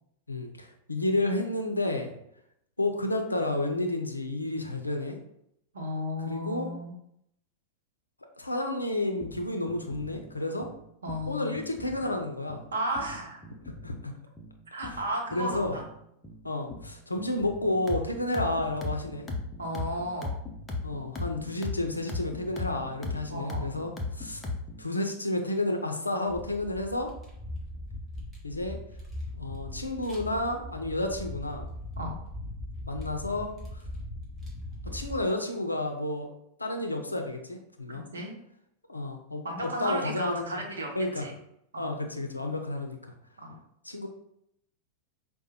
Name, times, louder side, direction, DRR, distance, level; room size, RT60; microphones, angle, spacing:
voice 1, 0.3-2.1 2.8-5.2 6.3-6.7 8.4-10.7 11.3-12.6 13.8-14.1 14.8-15.0 15.3-15.7 16.4-19.3 20.8-24.4 24.8-27.1 28.4-28.8 29.4-31.7 32.9-33.5 34.8-36.3 36.6-38.1 38.9-40.6 40.9-41.3 41.8-43.0 43.8-44.1, left 2 dB, 85° left, 4 dB, 0.5 m, -31 dB
voice 2, 5.7-6.9 11.0-11.6 12.7-13.5 14.7-15.8 19.6-20.3 23.3-23.7 32.0-32.2 37.9-38.3 39.4-41.3 41.7-41.9 43.4-43.5, equal, 70° right, 0 dB, 0.8 m, -34 dB
sound 1, 9.2-24.9, left 3 dB, 15° left, 0.6 m, -38 dB
sound 2, 26.3-35.2, left 1 dB, 15° right, 1.2 m, -40 dB
4.8 x 2.1 x 2.8 m, 0.76 s
figure-of-eight pair, 90°, 0 cm